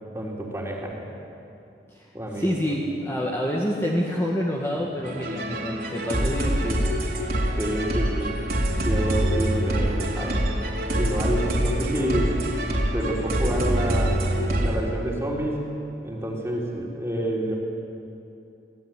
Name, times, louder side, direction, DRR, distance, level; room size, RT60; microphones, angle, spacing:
voice 1, 0.1-1.1 2.1-2.5 7.6-8.4 8.8-10.4 10.9-12.3 12.9-14.2 14.6-15.7 16.0-17.5, right 1 dB, 15° right, -3 dB, 3.9 m, -28 dB
voice 2, 1.9-6.8, equal, 15° left, -3 dB, 2.0 m, -27 dB
sound 1, 5.0-14.8, right 1 dB, 50° right, 3.6 m, -25 dB
26.0 x 17.5 x 9.2 m, 2.8 s
head